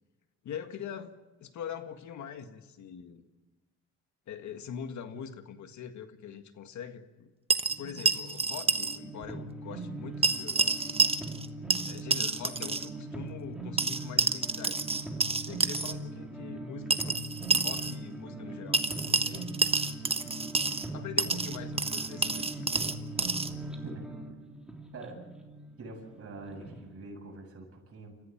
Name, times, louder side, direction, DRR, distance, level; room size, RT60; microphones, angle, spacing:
voice 1, 0.4-3.2 4.3-7.3 7.8-11.2 11.8-14.8 15.5-19.5 20.9-22.7, left 8 dB, 70° left, 8 dB, 1.8 m, -43 dB
sound 1, 7.5-9.0 9.2-9.3 10.2-11.5 11.7-12.9 13.8-15.9 16.9-17.9 18.7-20.9 21.2-23.5, right 4 dB, 20° right, 1.3 m, -28 dB
sound 2, 7.7-26.8, right 2 dB, 5° right, 3.3 m, -41 dB
voice 2, 25.8-28.1, right 3 dB, 50° right, 1 dB, 7.9 m, -44 dB
28.0 x 15.0 x 7.3 m, 1.2 s
cardioid pair, 90°, 30 cm